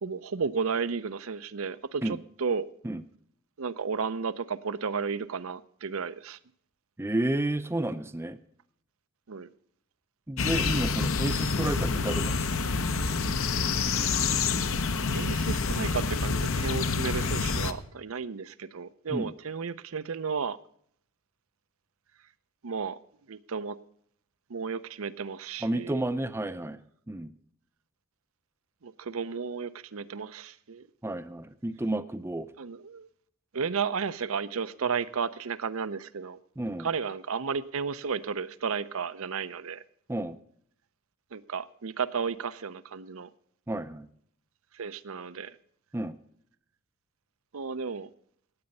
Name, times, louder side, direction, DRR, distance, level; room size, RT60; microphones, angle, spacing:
voice 1, 0.0-2.7 3.6-6.4 9.3-9.5 15.1-20.6 22.6-23.0 23.3-23.8 24.5-26.0 28.8-30.9 32.6-33.1 33.5-36.4 36.8-39.8 41.3-43.3 44.7-45.6 47.5-48.1, right 5 dB, 70° right, 14 dB, 0.6 m, -33 dB
voice 2, 7.0-8.4 10.3-12.5 19.1-19.3 25.6-26.8 27.1-27.3 31.0-32.5 36.6-36.9 40.1-40.4 43.7-44.1 45.9-46.2, right 1 dB, 10° right, 11 dB, 0.5 m, -31 dB
sound 1, 10.4-17.7, left 4 dB, 65° left, 0.9 m, -27 dB
16.5 x 8.8 x 5.3 m, 0.64 s
head